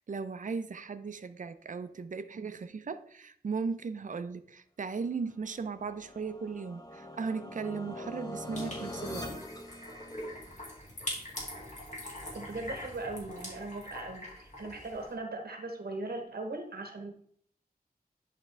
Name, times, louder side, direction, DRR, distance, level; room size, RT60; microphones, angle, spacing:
voice 1, 0.1-9.3, right 5 dB, 55° right, 0.5 m, -37 dB
sound 1, 5.4-10.6, left 1 dB, 25° left, 1.0 m, -43 dB
sound 2, 8.5-15.1, left 1 dB, 50° left, 2.4 m, -43 dB
voice 2, 12.3-17.2, right 2 dB, 80° right, 1.0 m, -39 dB
10.5 x 3.6 x 3.3 m
wide cardioid pair, 60°, 16 cm